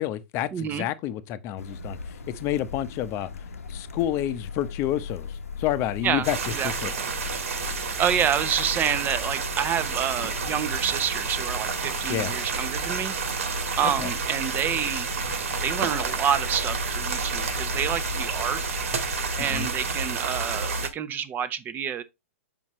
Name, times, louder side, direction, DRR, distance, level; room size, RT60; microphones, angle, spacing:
voice 1, 0.0-2.0 2.3-3.3 3.7-6.9 12.1-12.3 13.8-14.1 19.4-19.7, left 12 dB, 35° left, 0.8 m, -29 dB
voice 2, 0.5-0.9 6.0-6.9 7.7-13.1 13.8-15.1 15.6-18.6 19.4-22.0, right 8 dB, 25° right, 0.8 m, -28 dB
sound 1, 1.6-20.1, left 5 dB, 90° left, 1.0 m, -38 dB
sound 2, 6.2-20.9, right 5 dB, 75° right, 1.9 m, -30 dB
7.2 x 5.5 x 3.1 m
hypercardioid pair, 120°, 8 cm